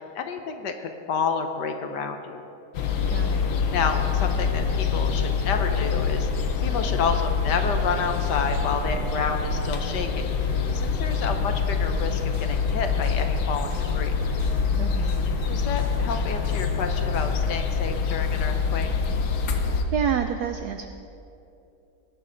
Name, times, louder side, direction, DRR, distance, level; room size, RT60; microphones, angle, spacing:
voice 1, 0.0-2.4 3.7-10.3 10.7-14.2 15.5-18.9, left 5 dB, 60° left, 6 dB, 1.3 m, -30 dB
sound 1, 2.7-19.8, left 5 dB, 80° left, 1.8 m, -25 dB
voice 2, 3.1-3.5 14.8-15.3 19.9-20.9, right 8 dB, 80° right, 8 dB, 0.8 m, -28 dB
sound 2, 12.0-17.4, right 1 dB, 30° right, 1.2 m, -45 dB
20.0 x 11.0 x 3.9 m, 2.7 s
omnidirectional pair, 2.3 m